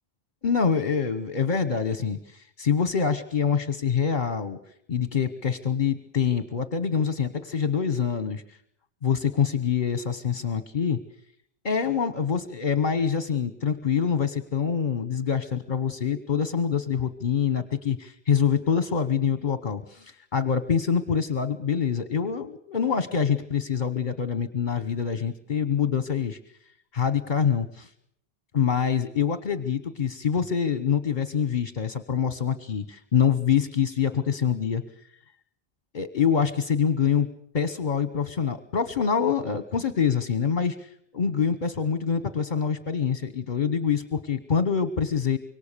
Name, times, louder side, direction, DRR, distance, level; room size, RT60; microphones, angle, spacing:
voice 1, 0.4-4.6 4.9-8.6 9.0-11.0 11.6-26.4 26.9-27.9 28.5-34.8 35.9-37.3 37.5-45.4, left 7 dB, 50° left, 12 dB, 1.2 m, -25 dB
26.0 x 23.0 x 6.8 m, 0.70 s
omnidirectional pair, 1.0 m